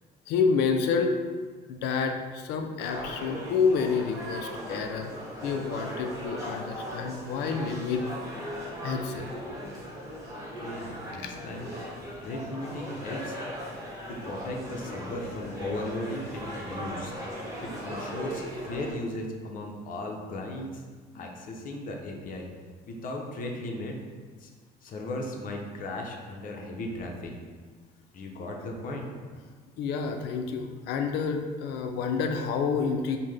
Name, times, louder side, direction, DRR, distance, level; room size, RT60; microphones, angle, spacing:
voice 1, 0.3-1.2 1.7-5.1 5.4-8.0 8.8-9.3 11.2-11.3 29.8-33.2, left 5 dB, 90° left, 5 dB, 0.4 m, -28 dB
sound 1, 2.8-18.9, equal, 20° right, 1.1 m, -38 dB
voice 2, 10.6-11.8 12.2-13.4 14.1-17.1 17.6-20.8 21.1-22.5 22.9-24.0 24.4-24.5 24.8-27.3 28.1-29.1, left 1 dB, 55° left, 1 dB, 0.7 m, -36 dB
5.4 x 2.2 x 3.2 m, 1.5 s
cardioid pair, 110°, 17 cm